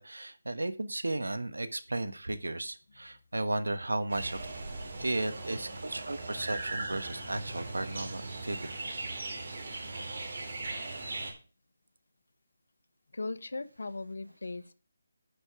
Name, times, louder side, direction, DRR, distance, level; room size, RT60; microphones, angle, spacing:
voice 1, 0.0-4.5 5.0-8.6, right 2 dB, 90° right, 12 dB, 1.2 m, -34 dB
sound 1, 4.1-11.3, right 2 dB, 55° right, 3.5 m, -39 dB
voice 2, 13.1-14.7, left 3 dB, 75° left, 14 dB, 1.0 m, -40 dB
10.0 x 5.1 x 4.8 m, 0.35 s
figure-of-eight pair, 165°, 0 cm